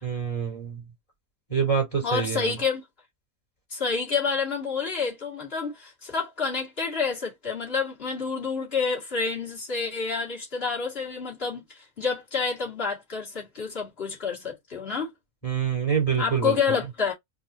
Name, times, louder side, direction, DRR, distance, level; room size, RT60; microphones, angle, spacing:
voice 1, 0.0-0.8 1.5-2.5 15.4-16.8, right 7 dB, 25° left, 2.8 m, -26 dB
voice 2, 2.0-2.8 3.7-15.1 16.2-17.1, left 5 dB, 45° left, 2.4 m, -28 dB
4.7 x 2.8 x 2.7 m
omnidirectional pair, 1.5 m